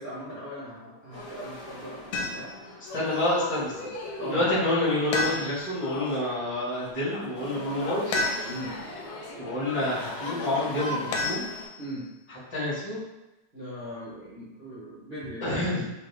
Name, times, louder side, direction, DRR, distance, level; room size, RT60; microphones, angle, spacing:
voice 1, 0.0-2.7 4.2-4.4 8.4-8.8 11.8-12.0 13.5-15.9, equal, 70° right, -10 dB, 0.5 m, -39 dB
sound 1, 1.1-11.7, left 1 dB, 55° left, 1.2 m, -46 dB
sound 2, 2.1-2.7 5.1-5.8 8.1-8.8 11.1-12.0, left 2 dB, 90° left, 2.0 m, -31 dB
sound 3, 2.9-11.3, left 2 dB, 70° left, 1.6 m, -39 dB
voice 2, 2.9-3.9 4.2-8.5 9.4-11.4 12.5-13.0 15.4-15.9, left 1 dB, 30° left, -9 dB, 0.5 m, -28 dB
5.5 x 2.4 x 3.5 m, 1.0 s
omnidirectional pair, 3.3 m